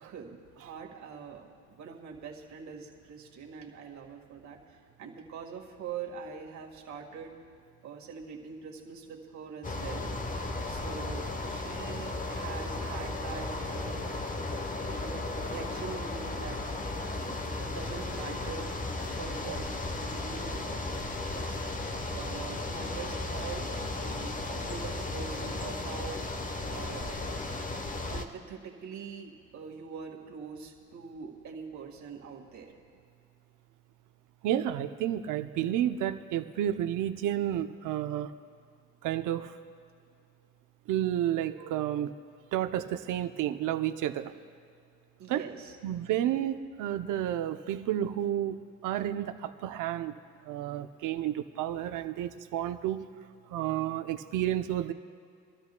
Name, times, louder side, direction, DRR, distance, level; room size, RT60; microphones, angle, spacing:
voice 1, 0.0-7.3 7.8-10.1 10.7-13.5 13.7-14.2 14.8-16.6 17.2-18.7 19.1-20.9 21.2-21.6 22.1-23.7 24.0-26.2 26.7-27.2 28.1-32.7 45.2-45.8 46.3-46.4, right 6 dB, 70° right, 1 dB, 1.8 m, -43 dB
sound 1, 9.6-28.3, left 2 dB, 25° left, 1.0 m, -35 dB
voice 2, 34.4-38.3 39.0-39.5 40.9-42.1 42.5-44.3 45.3-45.4 45.8-50.1 50.5-53.1 53.5-54.9, right 11 dB, 90° right, 9 dB, 0.7 m, -31 dB
25.5 x 13.0 x 2.3 m, 2.3 s
cardioid pair, 90°, 30 cm